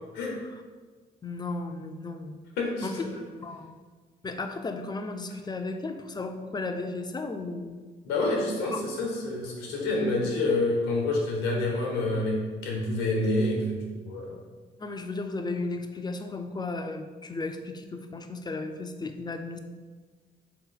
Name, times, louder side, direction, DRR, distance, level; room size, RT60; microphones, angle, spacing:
voice 1, 1.2-2.4 2.8-3.0 3.4-3.8 4.2-7.8 8.7-8.8 14.8-19.6, left 3 dB, 20° left, 6 dB, 0.5 m, -34 dB
voice 2, 2.6-3.2 8.0-14.4, left 2 dB, 85° left, -1 dB, 0.9 m, -28 dB
3.7 x 2.9 x 3.9 m, 1.4 s
hypercardioid pair, 50°, 20 cm